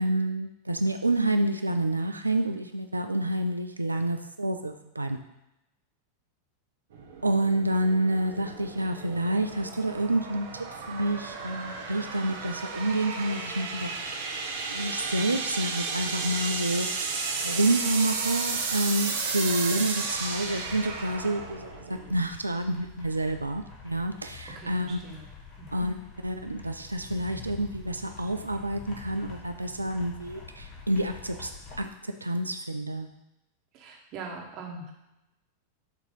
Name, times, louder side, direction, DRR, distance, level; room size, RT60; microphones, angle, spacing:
voice 1, 0.0-5.2 7.2-14.0 14.7-25.0 25.7-25.9 26.2-31.5 31.8-33.1, right 1 dB, 80° right, 6 dB, 0.3 m, -28 dB
sound 1, 6.9-22.3, right 4 dB, 60° right, 1.0 m, -33 dB
sound 2, 20.1-31.8, left 4 dB, 35° left, 1.7 m, -47 dB
voice 2, 24.5-25.3 25.6-25.9 33.7-34.9, right 3 dB, 40° right, -1 dB, 1.5 m, -41 dB
6.7 x 3.0 x 5.3 m, 0.92 s
figure-of-eight pair, 90°, 0 cm